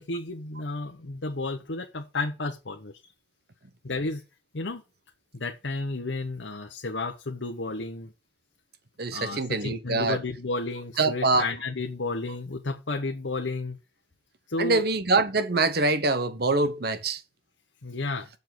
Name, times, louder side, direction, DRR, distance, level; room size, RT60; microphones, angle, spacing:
voice 1, 0.0-2.9 3.8-4.2 4.5-4.8 5.3-8.1 9.1-13.8 14.5-14.8 17.8-18.3, left 3 dB, 75° left, 1.0 m, -32 dB
voice 2, 9.0-10.2 11.0-11.5 14.6-17.2, right 3 dB, 55° right, 1.1 m, -24 dB
7.2 x 6.6 x 6.0 m
head